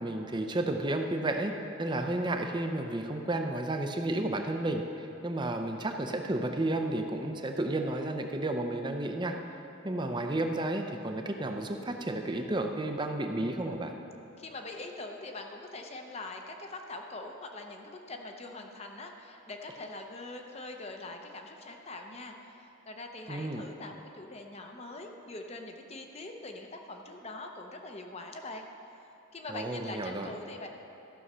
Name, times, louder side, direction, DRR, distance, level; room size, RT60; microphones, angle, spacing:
voice 1, 0.0-1.5 1.8-9.4 9.8-13.9 23.3-23.6 29.5-30.3, right 1 dB, 20° right, 4 dB, 0.6 m, -32 dB
voice 2, 14.4-28.7 29.3-30.7, left 2 dB, 30° left, 3 dB, 0.7 m, -43 dB
14.0 x 6.3 x 5.5 m, 3.0 s
head